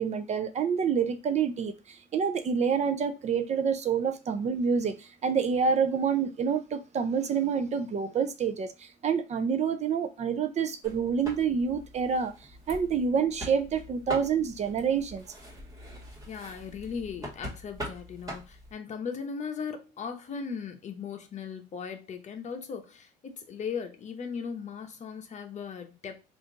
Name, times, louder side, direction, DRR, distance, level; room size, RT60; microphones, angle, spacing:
voice 1, 0.0-12.3 12.7-15.2, right 6 dB, 40° right, 0.6 m, -27 dB
sound 1, 10.8-18.7, equal, 20° right, 1.8 m, -43 dB
voice 2, 16.3-26.2, left 6 dB, 45° left, 0.9 m, -38 dB
3.6 x 2.6 x 3.8 m
cardioid pair, 110°, 17 cm